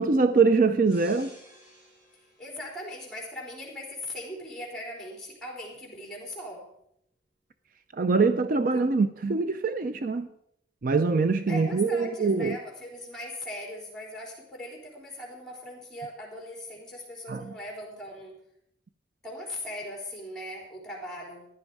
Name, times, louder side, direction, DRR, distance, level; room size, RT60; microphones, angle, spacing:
voice 1, 0.0-1.3 7.9-10.3 10.8-12.6 17.3-17.5, right 4 dB, 50° right, 0.5 m, -24 dB
sound 1, 0.9-3.6 4.0-4.3, equal, 30° right, 6.4 m, -54 dB
voice 2, 2.4-6.6 11.5-18.3 19.2-21.5, left 1 dB, 5° left, 3.8 m, -39 dB
15.0 x 11.0 x 4.7 m
head